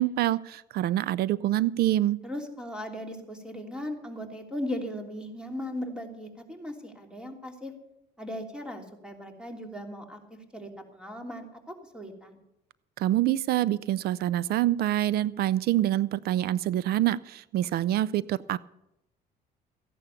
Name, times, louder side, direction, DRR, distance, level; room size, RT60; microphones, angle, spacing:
voice 1, 0.0-2.2 13.0-18.6, right 13 dB, 65° right, 20 dB, 0.5 m, -26 dB
voice 2, 2.2-7.7 8.2-12.4, left 1 dB, 5° right, 4 dB, 3.1 m, -38 dB
15.0 x 11.0 x 7.1 m, 0.85 s
cardioid pair, 110°, 17 cm